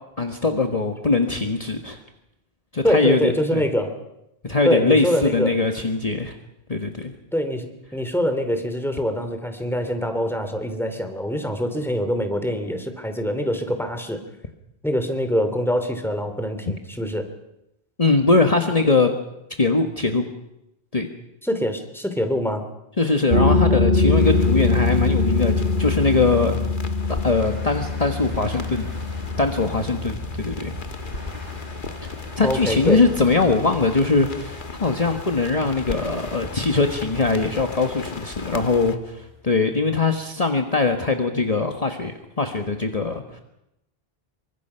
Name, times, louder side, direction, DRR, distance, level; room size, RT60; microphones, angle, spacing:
voice 1, 0.2-2.0 2.7-3.6 4.4-6.4 6.7-7.1 18.0-19.1 19.6-20.3 20.9-21.1 23.0-25.5 25.8-26.5 27.2-28.9 29.4-30.7 32.0-43.4, left 3 dB, 35° left, 5 dB, 1.5 m, -21 dB
voice 2, 2.8-3.9 4.6-5.6 7.3-14.2 14.8-17.3 21.4-22.7 32.4-33.0, equal, ahead, 7 dB, 2.9 m, -24 dB
sound 1, 23.3-34.7, left 3 dB, 75° right, 4.8 m, -24 dB
sound 2, 24.2-39.0, left 3 dB, 55° left, 1.6 m, -37 dB
sound 3, 27.3-37.8, equal, 40° right, 4.3 m, -42 dB
28.0 x 24.5 x 5.8 m, 0.85 s
omnidirectional pair, 1.0 m